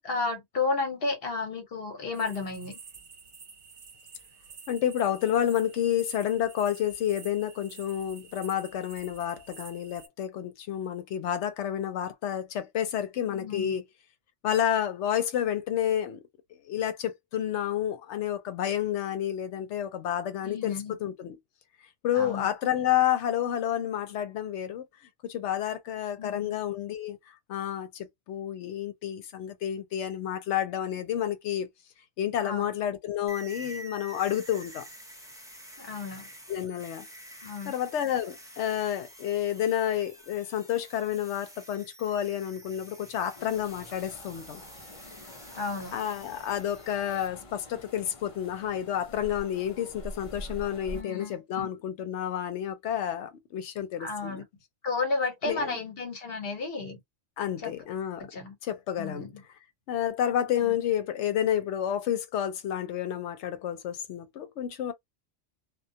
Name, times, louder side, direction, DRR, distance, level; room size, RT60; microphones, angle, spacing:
voice 1, 0.0-2.8 13.3-13.7 20.4-20.9 22.1-22.5 26.2-26.6 32.4-32.7 35.8-36.3 37.4-37.7 45.5-46.0 50.9-51.7 54.0-54.4 54.8-57.0 57.6-57.7 58.3-58.6 59.0-59.4 60.6-60.7, left 3 dB, 60° left, 1.1 m, -32 dB
sound 1, 2.1-10.1, right 5 dB, 50° right, 0.8 m, -50 dB
voice 2, 4.7-13.8 14.4-16.2 16.7-20.7 21.0-21.4 22.0-24.8 25.2-27.2 27.5-31.7 32.2-34.8 36.5-37.1 37.7-44.6 45.9-54.4 55.4-55.8 57.4-58.3 58.6-59.3 59.9-64.9, left 10 dB, 80° left, 0.9 m, -30 dB
sound 2, 33.3-47.3, right 1 dB, 5° right, 0.6 m, -48 dB
sound 3, 43.4-51.0, equal, 35° left, 0.6 m, -46 dB
2.3 x 2.1 x 2.6 m
omnidirectional pair, 1.2 m